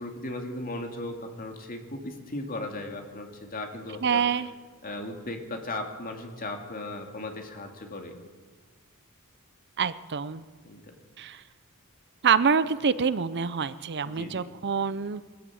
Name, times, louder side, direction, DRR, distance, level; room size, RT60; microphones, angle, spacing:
voice 1, 0.0-4.2 4.8-8.2 10.6-10.8 14.0-14.5, left 2 dB, 40° left, 3 dB, 2.7 m, -37 dB
voice 2, 4.0-4.5 9.8-10.4 11.2-11.4 12.2-15.2, right 6 dB, 50° right, 15 dB, 0.6 m, -26 dB
22.0 x 14.0 x 8.6 m, 1.4 s
head